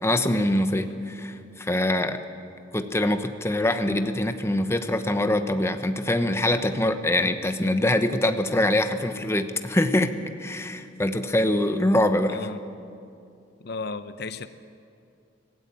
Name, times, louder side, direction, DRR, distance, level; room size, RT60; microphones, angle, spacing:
voice 1, 0.0-2.2 2.7-10.1 10.4-12.4, left 1 dB, 15° left, 8 dB, 1.0 m, -24 dB
voice 2, 12.3-12.6 13.6-14.5, left 4 dB, 60° left, 11 dB, 0.7 m, -34 dB
25.0 x 16.5 x 8.7 m, 2.5 s
head